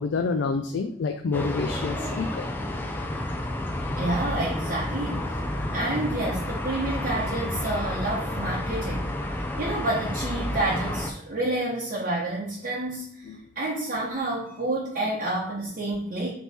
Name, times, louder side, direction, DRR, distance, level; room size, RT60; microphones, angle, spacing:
voice 1, 0.0-2.5 2.8-2.9 13.2-13.4, left 4 dB, 75° left, 5 dB, 0.4 m, -28 dB
sound 1, 1.3-11.1, left 1 dB, 10° left, 0.5 m, -30 dB
voice 2, 4.0-5.3 5.7-16.3, right 2 dB, 50° right, -6 dB, 0.9 m, -29 dB
3.5 x 3.0 x 4.1 m, 0.69 s
head